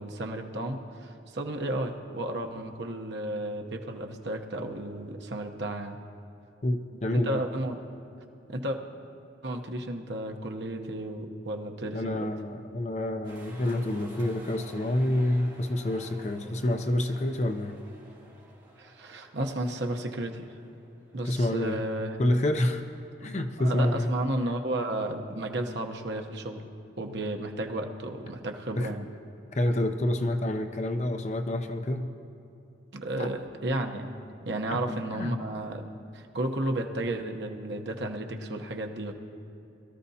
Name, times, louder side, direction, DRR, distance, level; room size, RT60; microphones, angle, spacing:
voice 1, 0.0-6.0 7.1-7.8 8.5-8.8 9.4-12.3 18.8-20.4 21.1-22.2 23.6-26.6 27.0-29.1 32.9-34.1 34.5-35.8 36.1-39.1, right 1 dB, 70° right, 3 dB, 0.9 m, -33 dB
voice 2, 6.6-7.4 11.9-17.8 21.2-21.8 22.2-22.8 23.2-24.1 28.8-29.0 29.5-32.1 33.2-33.3 34.7-34.8 35.1-35.4, left 1 dB, 35° left, 6 dB, 0.6 m, -28 dB
sound 1, 13.2-21.3, right 1 dB, 25° right, 3.2 m, -52 dB
22.0 x 13.0 x 2.8 m, 2.7 s
head